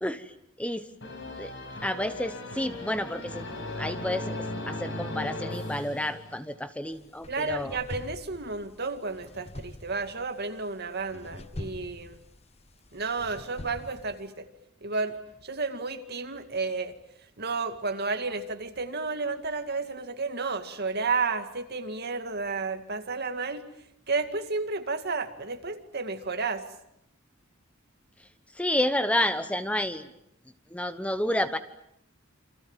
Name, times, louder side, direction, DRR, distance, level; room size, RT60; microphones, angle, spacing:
voice 1, 0.0-0.3 0.6-0.9 1.4-1.5 1.8-3.4 3.8-4.4 4.7-7.8 28.5-30.1 30.7-31.6, left 1 dB, 5° left, 11 dB, 1.0 m, -30 dB
sound 1, 1.0-6.7, left 2 dB, 65° left, 5.9 m, -37 dB
sound 2, 6.9-14.3, left 1 dB, 30° left, 1.1 m, -44 dB
voice 2, 7.3-12.2 12.9-14.5 14.8-17.0 17.4-23.6 24.1-26.7, right 4 dB, 55° right, 7 dB, 2.3 m, -32 dB
29.0 x 26.5 x 7.4 m, 0.79 s
head